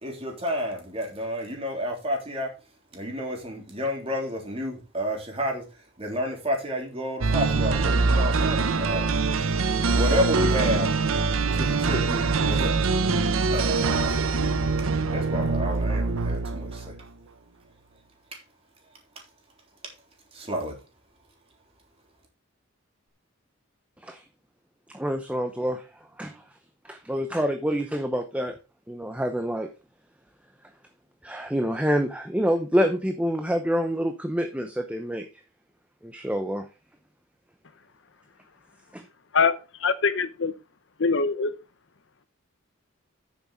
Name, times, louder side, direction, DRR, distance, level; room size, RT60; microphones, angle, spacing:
voice 1, 0.0-2.5 2.9-5.6 6.0-9.1 9.9-10.9 11.5-12.7 13.5-14.2 15.1-16.9 20.3-20.7, equal, 30° right, 3.3 m, -30 dB
sound 1, 7.2-17.0, right 4 dB, 85° right, 0.8 m, -24 dB
voice 2, 24.9-25.8 26.2-26.4 26.8-28.5 28.9-29.7 31.2-35.3 36.0-36.7 38.9-39.0, equal, 5° right, 0.7 m, -27 dB
voice 3, 39.3-40.5 41.0-41.5, left 5 dB, 60° left, 0.8 m, -23 dB
9.7 x 7.3 x 3.7 m
head